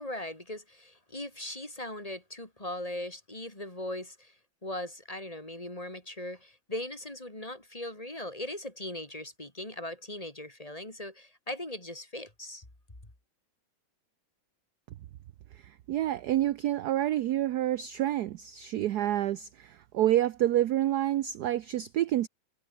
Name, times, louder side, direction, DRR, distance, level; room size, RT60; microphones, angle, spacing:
voice 1, 0.0-4.4 4.6-12.7, left 1 dB, 15° left, 3.4 m, -39 dB
voice 2, 15.9-22.3, right 13 dB, 70° right, 1.0 m, -28 dB
omnidirectional pair, 2.3 m